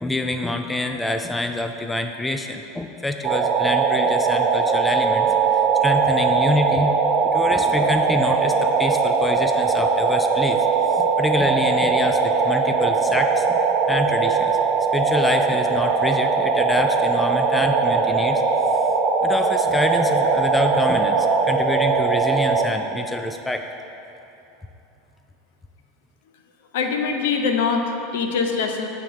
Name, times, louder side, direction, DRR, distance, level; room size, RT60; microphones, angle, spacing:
voice 1, 0.0-7.0 7.2-13.6 13.9-14.6 14.9-18.4 19.2-23.6, left 2 dB, 10° left, 6 dB, 0.4 m, -26 dB
sound 1, 3.2-22.6, right 5 dB, 45° right, 0.7 m, -20 dB
voice 2, 26.7-28.9, left 5 dB, 65° left, 4 dB, 0.7 m, -23 dB
8.3 x 3.7 x 6.6 m, 2.9 s
figure-of-eight pair, 80°, 0 cm